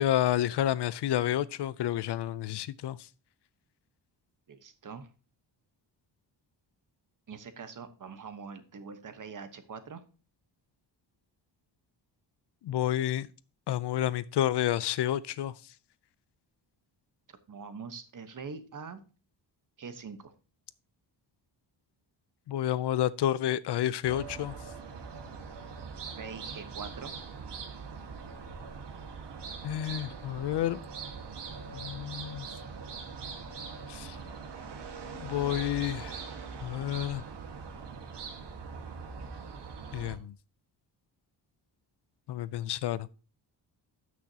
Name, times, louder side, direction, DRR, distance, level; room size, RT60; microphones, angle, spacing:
voice 1, 0.0-3.0 12.6-13.3 13.7-15.5 22.5-24.6 29.6-30.8 31.7-32.5 33.9-34.2 35.1-36.2 36.6-37.2 39.9-40.3 42.3-43.1, left 12 dB, 65° left, 0.5 m, -30 dB
voice 2, 4.5-5.1 7.3-10.0 17.5-19.0 19.8-20.3 26.2-27.2, right 5 dB, 45° right, 1.2 m, -43 dB
sound 1, 24.0-40.2, right 5 dB, 65° right, 1.6 m, -42 dB
13.0 x 6.3 x 2.8 m
cardioid pair, 115°, 45 cm